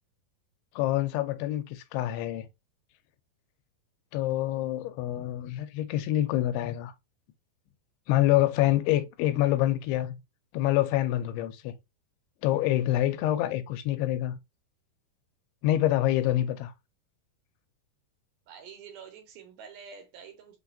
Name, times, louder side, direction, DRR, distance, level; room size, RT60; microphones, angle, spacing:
voice 1, 0.8-2.5 4.1-6.9 8.1-10.2 10.5-11.8 12.4-14.4 15.6-16.7, left 14 dB, 90° left, 2.7 m, -26 dB
voice 2, 18.5-20.6, right 6 dB, 75° right, 2.5 m, -47 dB
6.0 x 2.4 x 2.6 m
omnidirectional pair, 4.6 m